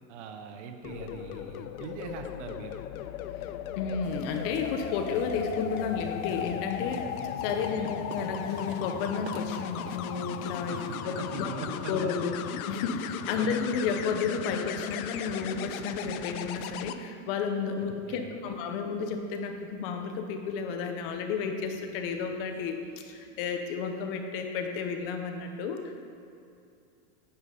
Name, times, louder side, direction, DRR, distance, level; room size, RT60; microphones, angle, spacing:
voice 1, 0.1-2.8 7.6-7.9 10.7-12.1 13.4-13.6 18.1-18.6, right 6 dB, 55° right, 6 dB, 0.9 m, -42 dB
sound 1, 0.8-17.0 18.9-19.1, left 11 dB, 80° left, 0.6 m, -37 dB
voice 2, 3.8-7.2 7.4-11.5 11.9-25.9, left 5 dB, 40° left, 5 dB, 0.8 m, -32 dB
sound 2, 4.0-11.0, right 7 dB, 30° right, 0.5 m, -49 dB
Race car auto racing, 7.3-23.5, right 5 dB, 85° right, 1.0 m, -50 dB
9.1 x 5.1 x 5.3 m, 2.6 s
supercardioid pair, 155°, 42 cm